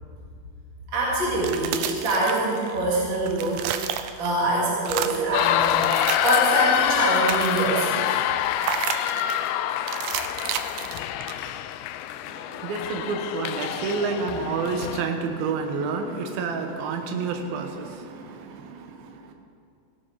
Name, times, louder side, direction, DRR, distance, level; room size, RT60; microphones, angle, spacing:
voice 1, 0.9-5.9 6.2-8.2, right 2 dB, 35° right, -6 dB, 2.1 m, -25 dB
sound 1, 1.3-2.8 3.1-4.4 4.8-5.3 5.7-6.7 7.0-7.8 8.6-9.4 9.9-11.6, right 10 dB, 90° right, 2.2 m, -31 dB
sound 2, 5.3-15.0, left 11 dB, 85° left, 2.8 m, -26 dB
voice 2, 12.2-19.3, right 4 dB, 70° right, 4 dB, 2.8 m, -29 dB
16.5 x 11.5 x 4.7 m, 2.4 s
omnidirectional pair, 5.0 m